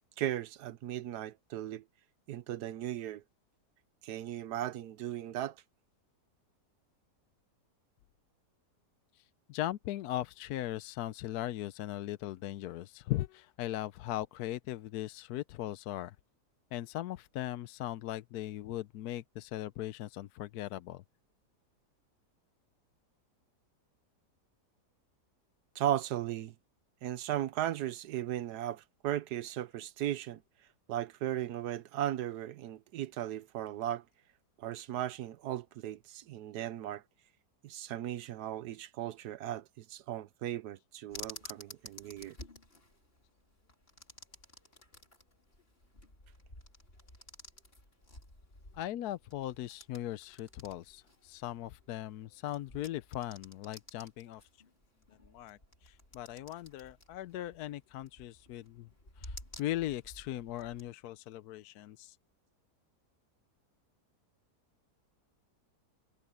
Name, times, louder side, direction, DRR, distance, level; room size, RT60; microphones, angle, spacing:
voice 1, 0.2-1.8 2.3-3.2 4.0-5.6 25.7-26.5 27.0-30.4 30.9-34.0 34.6-37.0 37.6-42.4, right 12 dB, 80° right, 1.3 m, -36 dB
voice 2, 9.5-16.2 16.7-21.0 48.7-54.5 55.3-58.9 59.2-62.2, left 14 dB, 75° left, 1.1 m, -39 dB
sound 1, 41.1-60.9, left 1 dB, 35° left, 4.6 m, -53 dB
omnidirectional pair, 1.7 m